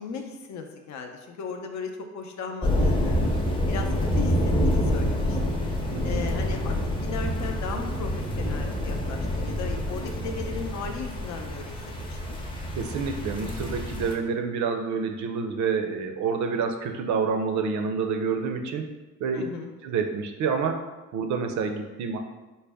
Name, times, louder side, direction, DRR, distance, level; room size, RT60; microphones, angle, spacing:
voice 1, 0.0-3.2 3.7-4.3 4.6-5.6 6.0-11.8 12.1-12.4 19.3-19.7, left 5 dB, 60° left, 4 dB, 0.6 m, -36 dB
sound 1, 2.6-14.1, left 1 dB, 15° left, 0.6 m, -27 dB
voice 2, 5.9-6.2 12.7-18.9 19.2-19.5 19.8-20.8 21.1-22.2, right 5 dB, 60° right, 5 dB, 0.5 m, -28 dB
3.9 x 2.1 x 3.4 m, 1.1 s
cardioid pair, 95°, 33 cm